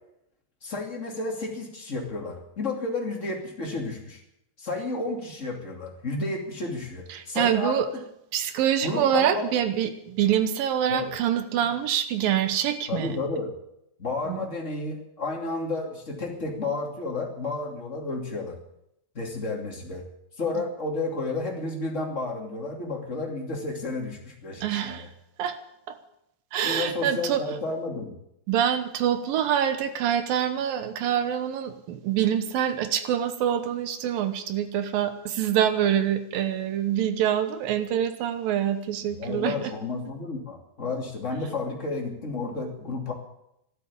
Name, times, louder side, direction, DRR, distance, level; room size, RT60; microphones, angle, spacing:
voice 1, 0.6-4.2 4.6-7.8 8.8-9.4 10.9-11.1 12.9-13.5 14.0-18.6 19.1-20.0 20.4-25.1 26.6-28.1 39.1-43.1, left 3 dB, 20° left, 0 dB, 2.4 m, -31 dB
voice 2, 7.1-7.9 8.3-13.2 14.3-14.5 24.6-25.1 25.4-25.6 25.9-26.0 26.5-27.4 28.5-39.7, right 10 dB, 70° right, 9 dB, 2.6 m, -25 dB
12.5 x 12.0 x 8.7 m, 0.80 s
omnidirectional pair, 4.6 m